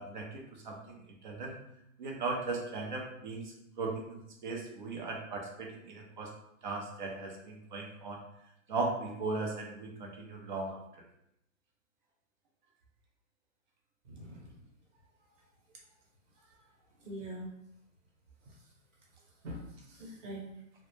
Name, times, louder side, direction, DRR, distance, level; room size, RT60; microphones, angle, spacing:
voice 1, 0.0-1.5 2.0-6.3 6.6-8.2 8.7-10.8, right 3 dB, 40° right, 1 dB, 0.4 m, -38 dB
voice 2, 14.0-14.5 15.2-15.3 16.4-16.7 17.0-17.5 18.4-18.6 19.4-20.5, right 1 dB, 65° right, -2 dB, 1.0 m, -44 dB
2.0 x 2.0 x 3.0 m, 0.81 s
hypercardioid pair, 160°, 39 cm